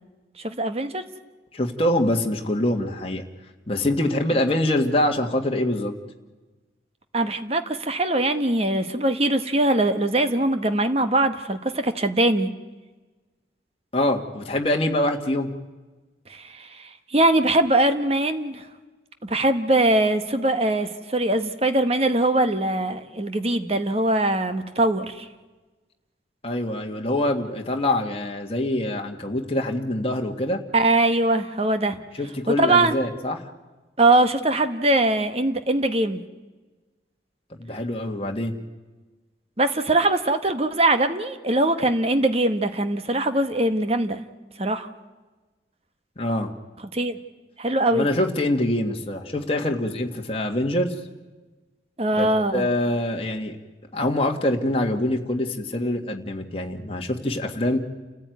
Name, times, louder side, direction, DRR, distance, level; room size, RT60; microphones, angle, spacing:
voice 1, 0.4-1.0 7.1-12.5 16.3-18.6 19.2-25.3 30.7-32.0 32.5-33.0 34.0-36.2 39.6-44.2 44.6-44.9 46.9-47.2 47.6-48.1 52.0-52.7, right 2 dB, 30° right, 10 dB, 1.2 m, -22 dB
voice 2, 1.5-3.2 3.7-5.9 13.9-15.5 26.4-30.6 32.2-33.4 37.6-38.5 46.2-46.5 47.9-50.9 52.2-52.3 52.5-53.6 53.9-57.8, left 1 dB, 30° left, 3 dB, 1.8 m, -24 dB
29.0 x 15.0 x 9.3 m, 1.2 s
head